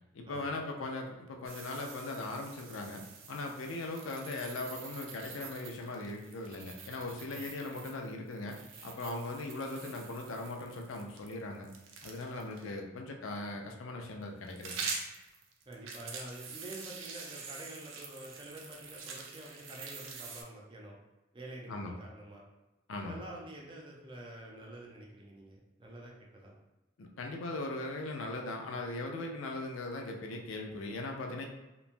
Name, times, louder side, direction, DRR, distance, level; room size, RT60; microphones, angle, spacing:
voice 1, 0.1-11.7 12.0-14.7 21.7-21.9 22.9-23.2 27.0-31.5, left 2 dB, 90° left, 2 dB, 0.4 m, -39 dB
sound 1, 1.5-12.6 14.2-20.4, right 5 dB, 85° right, 0.5 m, -45 dB
voice 2, 15.7-21.0 21.3-22.4 23.0-26.5, right 1 dB, 25° right, -2 dB, 0.4 m, -48 dB
3.0 x 2.2 x 2.5 m, 1.0 s
head